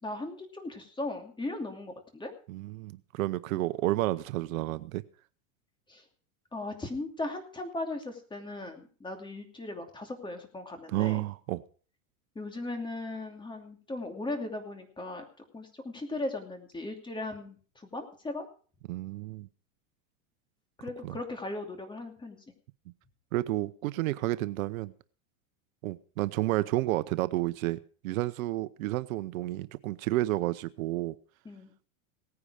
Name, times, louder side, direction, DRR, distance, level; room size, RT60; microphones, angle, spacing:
voice 1, 0.0-2.3 5.9-6.0 6.5-11.2 12.3-15.2 15.5-18.5 20.8-22.4 31.4-31.7, left 2 dB, 10° left, 2.7 m, -38 dB
voice 2, 2.5-5.0 10.9-11.6 18.9-19.5 21.0-21.2 23.3-24.9 25.8-27.8 28.0-31.2, right 17 dB, 75° right, 0.9 m, -31 dB
18.0 x 9.8 x 4.9 m
supercardioid pair, 130°, 42 cm